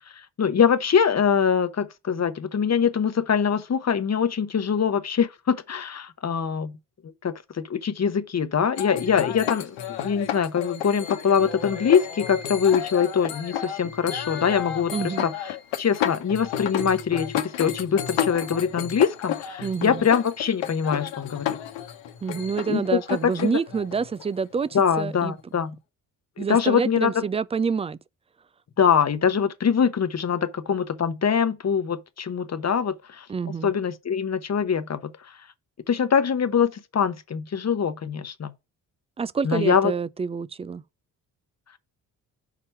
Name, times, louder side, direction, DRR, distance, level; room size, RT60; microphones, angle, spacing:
voice 1, 0.0-6.8 7.2-14.9 15.2-15.3 15.8-21.6 22.7-23.6 24.7-25.7 26.4-27.1 28.8-33.3 33.6-35.1 35.9-38.5 39.4-39.9, left 7 dB, 35° left, 1.0 m, -23 dB
sound 1, 8.8-25.1, left 10 dB, 65° left, 1.1 m, -32 dB
voice 2, 14.9-15.3 19.6-20.0 22.2-25.4 26.4-28.0 33.3-33.7 39.2-40.8, right 5 dB, 15° right, 0.3 m, -27 dB
6.0 x 4.3 x 5.6 m
hypercardioid pair, 40°, 48 cm